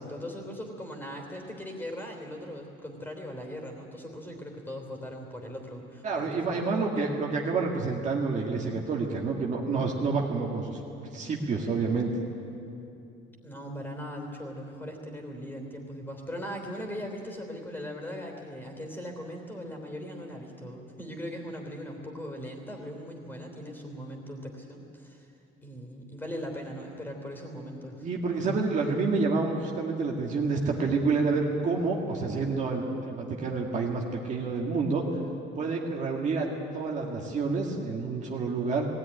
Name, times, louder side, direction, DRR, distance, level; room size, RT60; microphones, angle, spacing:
voice 1, 0.0-6.7 13.4-25.3 25.6-28.0, equal, 10° left, 2 dB, 3.2 m, -39 dB
voice 2, 6.0-10.8 11.1-12.1 28.0-35.0 35.6-36.5 36.7-38.9, right 4 dB, 35° right, -1 dB, 2.0 m, -28 dB
19.5 x 17.5 x 9.9 m, 2.7 s
cardioid pair, 170°, 20 cm